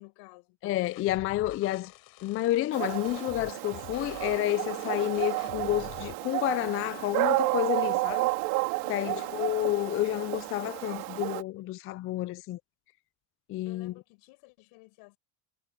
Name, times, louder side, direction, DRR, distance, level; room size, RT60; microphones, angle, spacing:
voice 1, 0.0-0.6 8.8-9.2 13.6-15.2, left 29 dB, 90° left, 7.6 m, -52 dB
voice 2, 0.6-1.9 2.2-8.3 8.9-12.6 13.5-13.9, left 15 dB, 35° left, 0.4 m, -30 dB
sound 1, 0.8-6.1, left 21 dB, 70° left, 6.0 m, -48 dB
Dog, 2.7-11.4, right 23 dB, 85° right, 3.3 m, -31 dB
cardioid pair, 145°, 38 cm